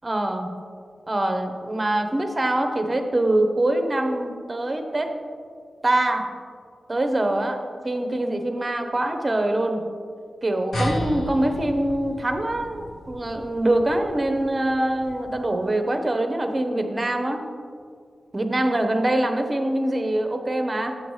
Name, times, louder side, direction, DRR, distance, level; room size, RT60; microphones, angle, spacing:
voice 1, 0.0-0.5 1.1-5.1 5.8-6.3 6.9-7.6 7.8-9.8 10.4-17.4 18.3-21.0, right 1 dB, 30° right, 5 dB, 0.7 m, -24 dB
sound 1, 10.7-15.6, equal, 75° left, 1.4 m, -33 dB
6.9 x 6.8 x 3.1 m, 2.1 s
wide cardioid pair, 90°, 0 cm